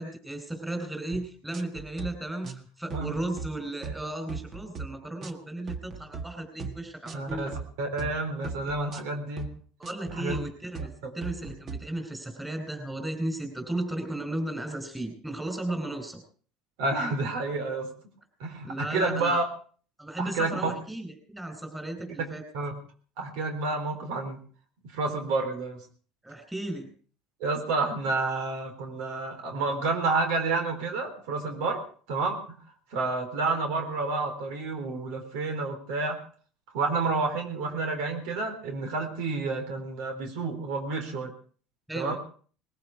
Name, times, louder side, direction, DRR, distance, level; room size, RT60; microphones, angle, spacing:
voice 1, 0.0-7.5 9.8-16.2 18.6-19.4 20.0-22.4 26.2-26.9 41.9-42.1, right 1 dB, 5° right, 6 dB, 4.1 m, -35 dB
sound 1, 1.1-1.2 1.5-2.1 2.4-2.6 2.9-3.5 3.8-4.0 4.3-4.9 5.2-5.4 5.7-6.2 6.6-6.8 7.1-7.6 8.0-8.2 8.4-9.0 9.4-9.5 9.8-10.4 10.7-10.9 11.2-11.8, right 5 dB, 35° right, 1.7 m, -38 dB
voice 2, 7.1-7.5 7.8-9.5 10.1-10.4 16.8-17.9 18.4-19.4 20.2-20.7 22.5-22.7 23.2-24.4 24.9-25.8 27.4-31.8 32.1-32.6 32.9-36.2 36.7-41.3 41.9-42.2, right 3 dB, 75° right, 6 dB, 3.9 m, -29 dB
20.0 x 14.5 x 4.8 m, 0.43 s
supercardioid pair, 125°, 0 cm